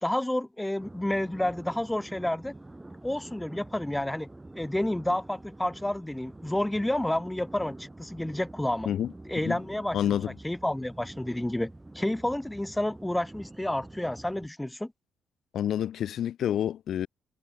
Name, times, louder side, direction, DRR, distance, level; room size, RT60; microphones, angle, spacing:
voice 1, 0.0-2.5 3.0-4.3 4.5-8.9 9.3-10.2 10.4-14.9, left 1 dB, 10° left, 1.4 m, -30 dB
sound 1, 0.8-14.5, right 2 dB, 15° right, 3.3 m, -47 dB
voice 2, 9.9-10.3 15.5-17.1, left 10 dB, 70° left, 1.1 m, -28 dB
cardioid pair, 90°, 0 cm